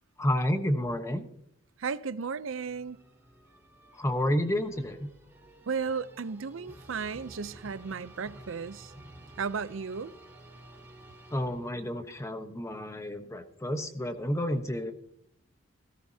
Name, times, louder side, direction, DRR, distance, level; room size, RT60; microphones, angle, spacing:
voice 1, 0.2-1.3 3.9-5.1 11.3-14.9, left 1 dB, 15° left, 1.0 m, -30 dB
voice 2, 1.8-3.0 5.7-8.9 9.4-10.1, right 5 dB, 85° right, 0.6 m, -34 dB
sound 1, 2.5-12.0, right 1 dB, 10° right, 3.3 m, -52 dB
17.0 x 15.5 x 2.8 m
head